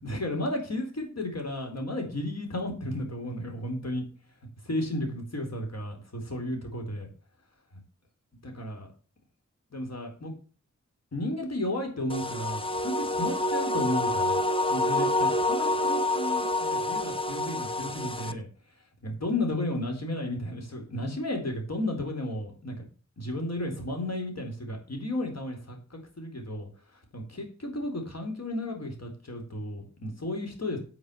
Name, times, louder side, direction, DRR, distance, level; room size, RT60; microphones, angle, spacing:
voice 1, 0.0-4.0 4.6-7.1 8.4-8.9 9.7-10.4 11.1-14.4 14.7-18.5 19.0-22.9 23.2-26.7 27.1-30.8, left 1 dB, 60° left, 3 dB, 4.1 m, -33 dB
sound 1, 12.1-18.3, left 2 dB, 20° left, 1.2 m, -27 dB
8.6 x 6.7 x 8.3 m, 0.38 s
wide cardioid pair, 55°, 29 cm